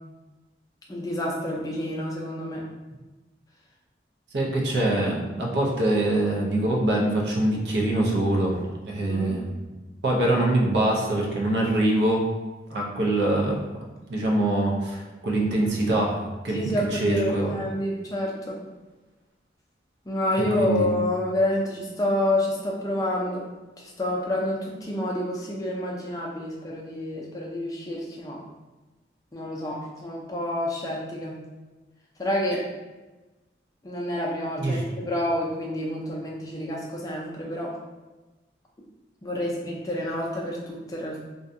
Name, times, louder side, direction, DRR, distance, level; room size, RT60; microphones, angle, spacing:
voice 1, 0.9-2.7 9.1-9.4 16.5-18.6 20.1-23.4 23.8-28.4 29.3-31.4 32.2-32.7 33.8-37.8 39.2-41.2, left 1 dB, 20° left, -3 dB, 0.4 m, -28 dB
voice 2, 4.3-9.4 10.0-12.2 12.7-13.6 14.1-17.5 20.6-20.9 34.6-34.8, right 1 dB, 80° right, -2 dB, 0.5 m, -24 dB
2.6 x 2.2 x 2.5 m, 1.2 s
head